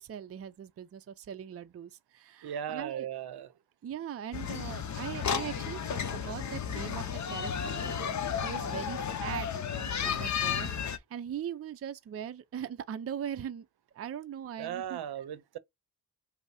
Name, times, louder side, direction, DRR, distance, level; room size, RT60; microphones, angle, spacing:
voice 1, 0.0-3.1 3.8-13.7 13.9-15.0, right 9 dB, 35° right, 0.5 m, -40 dB
voice 2, 2.4-3.5 14.6-15.6, right 9 dB, 70° right, 0.7 m, -37 dB
sound 1, 4.3-11.0, left 7 dB, 45° left, 0.8 m, -33 dB
5.3 x 2.1 x 4.8 m
cardioid pair, 95°, 40 cm